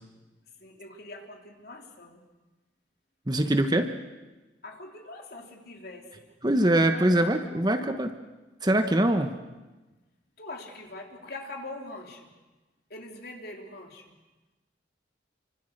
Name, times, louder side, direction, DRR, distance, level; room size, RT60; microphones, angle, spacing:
voice 1, 0.6-2.2 4.6-6.3 6.9-7.8 10.4-12.3 12.9-14.1, left 2 dB, 55° left, 2 dB, 3.5 m, -43 dB
voice 2, 3.3-3.9 6.4-8.1 8.6-9.3, right 1 dB, 20° right, 7 dB, 1.1 m, -23 dB
27.5 x 25.0 x 6.6 m, 1.2 s
head